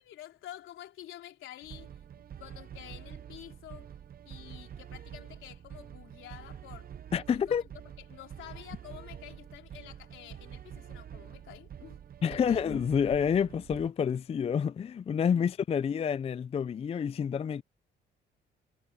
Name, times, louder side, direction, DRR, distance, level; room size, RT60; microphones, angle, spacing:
voice 1, 0.0-4.0 4.3-6.9 7.3-7.6 8.0-12.0 12.2-12.7 15.2-15.5, left 13 dB, 85° left, 3.6 m, -49 dB
sound 1, 1.6-13.9, right 9 dB, 50° right, 0.8 m, -47 dB
voice 2, 7.1-7.6 12.2-17.6, left 7 dB, 30° left, 0.4 m, -28 dB
cardioid pair, 90°, 20 cm